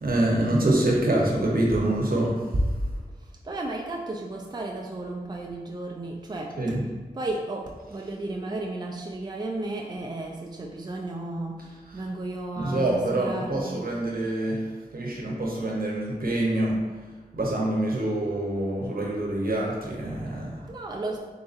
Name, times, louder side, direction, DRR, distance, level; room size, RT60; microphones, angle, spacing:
voice 1, 0.0-2.4 6.6-6.8 12.6-14.6 14.9-16.8 17.3-20.6, right 1 dB, 75° right, -3 dB, 0.9 m, -25 dB
voice 2, 3.4-6.6 7.1-13.9 20.7-21.2, right 2 dB, 30° right, 0 dB, 0.4 m, -34 dB
4.0 x 3.7 x 2.5 m, 1.4 s
wide cardioid pair, 65°, 15 cm